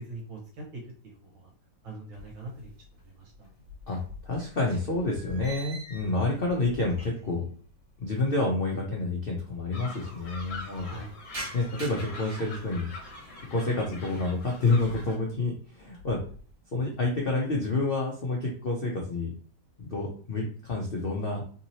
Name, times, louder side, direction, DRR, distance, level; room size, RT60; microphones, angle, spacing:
voice 1, 0.0-1.5 1.8-2.7 3.0-3.5 10.8-11.1, right 2 dB, 75° right, -1 dB, 1.8 m, -43 dB
sound 1, 2.2-3.1 3.3-7.4 7.7-7.8 8.7-8.8 8.9-9.0 9.3-9.8 10.2-13.4 13.9-14.4 14.8-15.2 15.6-16.5, equal, 45° right, 2.1 m, -45 dB
voice 2, 3.9-7.4 8.0-11.0 11.5-12.9 13.5-16.2 16.7-19.3 19.8-21.4, left 2 dB, 90° left, -2 dB, 0.5 m, -29 dB
sound 2, 9.7-15.2, left 2 dB, 60° left, 1.4 m, -44 dB
3.7 x 2.9 x 2.7 m, 0.43 s
omnidirectional pair, 2.1 m